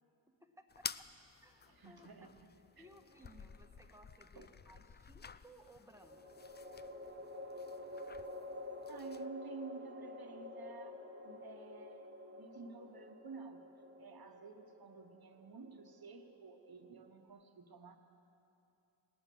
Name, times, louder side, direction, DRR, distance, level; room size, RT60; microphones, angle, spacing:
voice 1, 0.4-1.1 1.4-2.1 2.8-6.5, equal, 5° right, 4 dB, 1.2 m, -61 dB
sound 1, 0.7-9.3, left 6 dB, 25° left, 0.3 m, -52 dB
voice 2, 1.7-2.9 4.3-4.5 8.9-13.6 14.0-18.0, right 5 dB, 55° right, 6 dB, 1.2 m, -52 dB
sound 2, 2.9-3.7 5.9-17.3, left 2 dB, 25° right, 1.4 m, -50 dB
sound 3, 7.2-14.4, left 7 dB, 55° left, 3.9 m, -65 dB
18.0 x 6.8 x 9.2 m, 2.9 s
cardioid pair, 55°, 45 cm